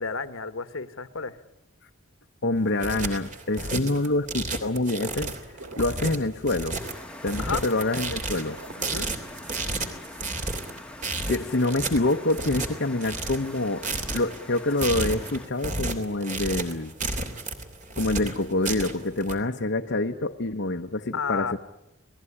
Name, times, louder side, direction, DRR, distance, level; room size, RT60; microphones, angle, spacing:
voice 1, 0.0-1.4 7.4-7.6 8.8-9.1 21.1-21.5, left 5 dB, 75° left, 12 dB, 1.4 m, -31 dB
voice 2, 2.4-5.3 5.8-6.8 7.2-8.6 11.3-13.8 14.1-16.9 18.0-21.6, left 2 dB, 55° left, 3 dB, 0.9 m, -26 dB
sound 1, 2.6-19.3, right 3 dB, 40° right, 3.1 m, -32 dB
sound 2, 5.5-6.1 6.4-6.7 8.4-9.8, right 2 dB, 75° right, 3.0 m, -45 dB
sound 3, 6.8-15.5, left 1 dB, 5° left, 1.4 m, -43 dB
29.0 x 19.0 x 9.9 m, 0.94 s
head